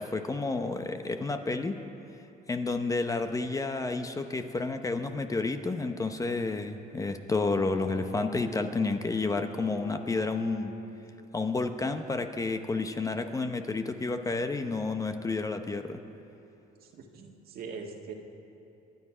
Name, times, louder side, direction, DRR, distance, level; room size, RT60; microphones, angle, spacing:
voice 1, 0.0-1.8 2.5-10.7 11.3-16.0, left 3 dB, 20° left, 7 dB, 0.8 m, -30 dB
Bowed string instrument, 7.3-11.4, left 2 dB, 45° left, 3.2 m, -48 dB
voice 2, 16.8-18.1, right 5 dB, 65° right, 2 dB, 1.8 m, -42 dB
25.5 x 9.8 x 5.0 m, 3.0 s
cardioid pair, 110°, 17 cm